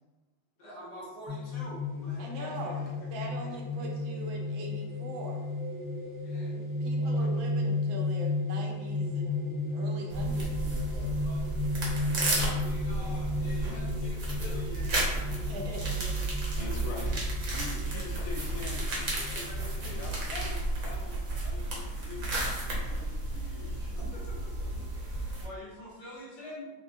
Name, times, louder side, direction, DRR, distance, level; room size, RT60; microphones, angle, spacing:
voice 1, 0.6-2.7 6.2-6.5 6.9-7.1 11.2-11.4 12.0-15.2 17.9-18.0 19.3-20.1 20.5-20.6 25.4-26.7, left 1 dB, 60° left, -6 dB, 1.6 m, -46 dB
sound 1, 1.3-20.4, left 2 dB, 45° left, 0.6 m, -34 dB
voice 2, 2.2-5.4 6.5-11.1 15.4-16.3, right 1 dB, 80° right, 1 dB, 1.3 m, -42 dB
sound 2, 10.1-25.5, right 2 dB, 55° right, 1.0 m, -33 dB
voice 3, 16.6-17.1 17.5-22.3 22.5-25.1, left 4 dB, 90° left, -1 dB, 1.5 m, -45 dB
4.8 x 2.2 x 2.5 m, 1.1 s
omnidirectional pair, 2.2 m